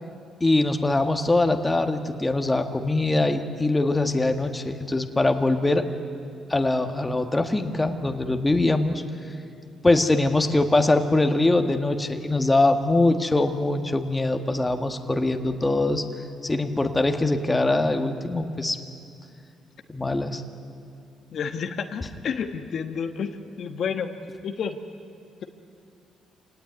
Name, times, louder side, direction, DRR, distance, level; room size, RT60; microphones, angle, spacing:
voice 1, 0.4-5.8 6.5-9.0 9.8-16.0 16.4-18.8 19.9-20.4 22.0-22.1, left 2 dB, 15° left, 6 dB, 1.7 m, -22 dB
voice 2, 21.3-24.1 24.4-24.8, left 6 dB, 60° left, 6 dB, 1.3 m, -30 dB
26.5 x 18.5 x 9.5 m, 2.4 s
cardioid pair, 90°, 0 cm